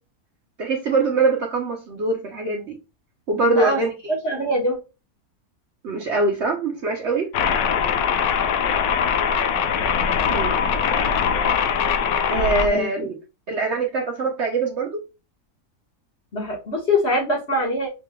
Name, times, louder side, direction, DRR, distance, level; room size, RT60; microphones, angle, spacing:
voice 1, 0.6-2.8 3.3-4.1 5.8-7.3 10.3-10.6 12.3-13.2 13.5-15.0, right 3 dB, 55° right, 0.9 m, -23 dB
voice 2, 3.4-3.8 4.2-4.8 12.7-12.9 16.3-17.9, left 1 dB, 45° left, 1.5 m, -23 dB
sound 1, 7.3-12.7, left 7 dB, 75° left, 1.1 m, -21 dB
5.7 x 3.3 x 2.2 m
omnidirectional pair, 1.6 m